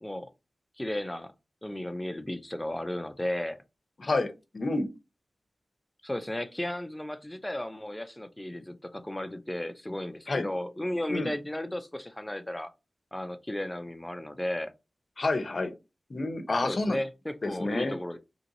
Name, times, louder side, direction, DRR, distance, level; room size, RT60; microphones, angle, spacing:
voice 1, 0.0-0.3 0.8-1.3 1.6-3.6 6.0-12.7 13.1-14.7 16.6-18.2, left 1 dB, 15° left, 0.4 m, -34 dB
voice 2, 4.0-4.9 10.3-10.5 11.1-11.3 15.2-15.7 16.1-17.0 17.4-18.0, left 2 dB, 60° left, 0.6 m, -29 dB
2.9 x 2.7 x 2.6 m
wide cardioid pair, 65°, 0 cm